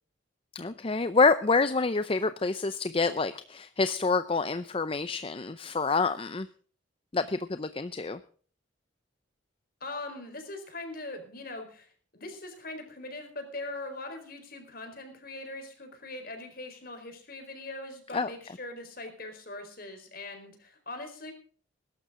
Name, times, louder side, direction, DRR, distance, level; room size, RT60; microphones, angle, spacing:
voice 1, 0.5-6.5 7.1-8.2 18.1-18.3, left 4 dB, 30° left, 12 dB, 0.6 m, -27 dB
voice 2, 9.8-21.3, left 2 dB, 50° left, 6 dB, 4.5 m, -41 dB
21.0 x 12.0 x 3.8 m, 0.43 s
head